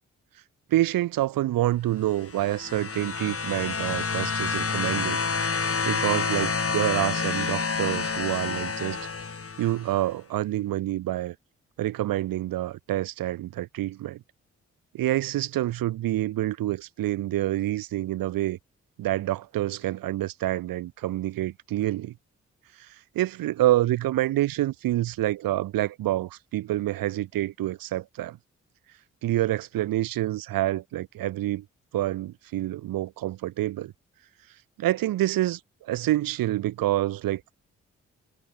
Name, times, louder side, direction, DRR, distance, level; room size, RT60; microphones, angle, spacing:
voice 1, 0.7-5.2 5.8-9.0 9.6-11.3 11.8-14.2 14.9-18.6 19.0-22.1 22.8-22.9 23.1-28.4 29.2-31.6 31.9-33.9 34.8-37.6, right 15 dB, 80° right, 6.6 m, -27 dB
sound 1, 2.1-9.9 11.0-11.1, left 4 dB, 40° left, 5.0 m, -28 dB
hypercardioid pair, 40°, 33 cm